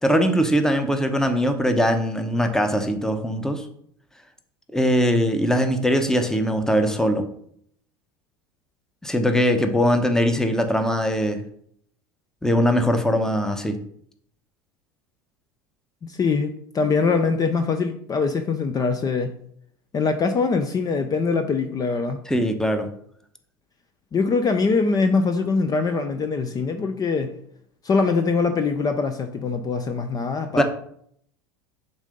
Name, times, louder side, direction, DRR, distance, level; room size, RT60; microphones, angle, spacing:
voice 1, 0.0-3.7 4.7-7.3 9.0-11.4 12.4-13.8 22.3-22.9 30.5-30.6, equal, 5° left, 7 dB, 0.9 m, -21 dB
voice 2, 16.0-19.4 19.9-22.2 24.1-27.3 27.8-30.6, left 4 dB, 30° left, 7 dB, 0.6 m, -23 dB
7.1 x 2.8 x 5.2 m, 0.67 s
hypercardioid pair, 80°, 13 cm